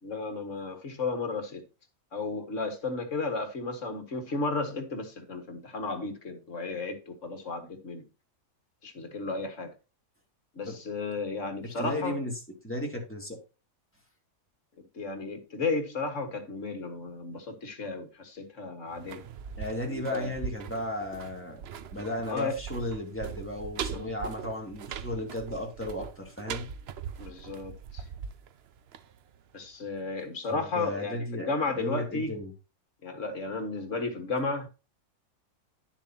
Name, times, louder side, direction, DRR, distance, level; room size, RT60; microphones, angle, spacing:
voice 1, 0.0-1.6 2.1-8.0 8.8-9.7 10.6-12.2 14.9-19.2 19.9-20.3 22.3-22.6 23.9-24.1 27.2-28.1 29.5-32.4 33.0-34.7, left 3 dB, 60° left, 2.0 m, -33 dB
voice 2, 11.8-12.3 12.6-13.4 19.6-21.6 21.9-26.7 30.5-32.5, left 1 dB, 10° left, 2.9 m, -35 dB
sound 1, 18.9-29.7 30.0-30.1, right 7 dB, 55° right, 0.8 m, -41 dB
11.5 x 7.1 x 2.8 m
omnidirectional pair, 1.5 m